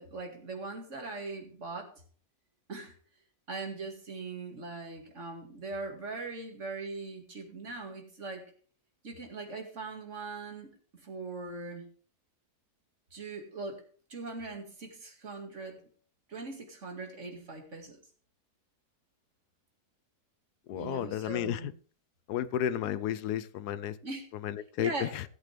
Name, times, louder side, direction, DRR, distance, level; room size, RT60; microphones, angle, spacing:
voice 1, 0.0-1.9 2.7-3.0 3.5-8.5 9.0-11.9 13.1-13.8 14.1-15.8 16.3-18.0 20.7-21.7 24.0-24.3 24.8-25.1, right 3 dB, 50° right, 2.4 m, -40 dB
voice 2, 20.7-21.6 22.3-24.0 24.4-25.2, left 11 dB, 90° left, 1.2 m, -32 dB
16.5 x 8.2 x 3.4 m
omnidirectional pair, 1.6 m